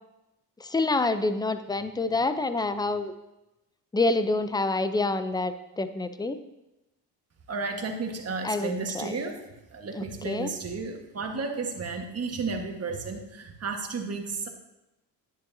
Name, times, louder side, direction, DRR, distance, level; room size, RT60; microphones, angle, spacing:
voice 1, 0.6-3.1 3.9-6.4 8.4-9.2 9.9-10.5, left 2 dB, 10° left, 10 dB, 0.6 m, -27 dB
voice 2, 7.5-9.4 9.7-14.5, right 4 dB, 35° right, 3 dB, 1.6 m, -33 dB
10.5 x 9.9 x 2.8 m, 0.96 s
cardioid pair, 85°, 40 cm